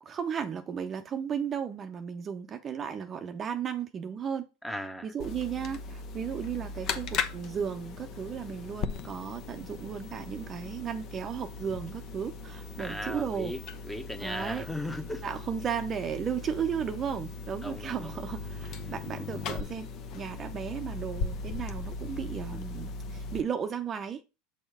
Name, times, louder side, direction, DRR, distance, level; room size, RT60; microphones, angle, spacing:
voice 1, 0.0-4.5 5.0-13.6 14.2-14.6 15.2-19.9 20.1-24.2, right 7 dB, 35° right, 0.6 m, -35 dB
voice 2, 4.6-5.1 12.8-13.6 13.9-15.2 17.6-18.2 22.5-22.6, left 1 dB, 5° left, 1.0 m, -37 dB
sound 1, 5.2-23.4, left 4 dB, 50° left, 0.8 m, -38 dB
6.3 x 3.6 x 4.9 m
hypercardioid pair, 95°, 0 cm